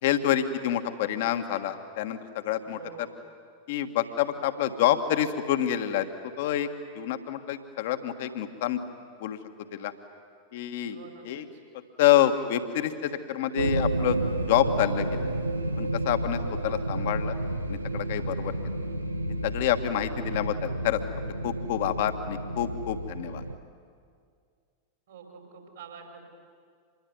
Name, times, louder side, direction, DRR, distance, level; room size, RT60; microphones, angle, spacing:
voice 1, 0.0-2.2 2.4-3.1 3.7-6.0 6.4-6.7 6.9-8.8 9.2-9.4 9.7-9.9 10.5-11.0 11.2-11.4 12.0-14.2 14.5-15.2 15.8-17.3 17.7-18.5 19.4-21.0 21.4-23.4, left 11 dB, 55° left, 8 dB, 1.6 m, -27 dB
voice 2, 2.6-3.1 10.8-11.6 16.4-16.9 25.1-26.2, right 6 dB, 60° right, 3 dB, 5.3 m, -47 dB
sound 1, 13.6-23.6, right 1 dB, 85° right, 1.2 m, -31 dB
26.5 x 21.5 x 9.6 m, 2.2 s
figure-of-eight pair, 90°, 0 cm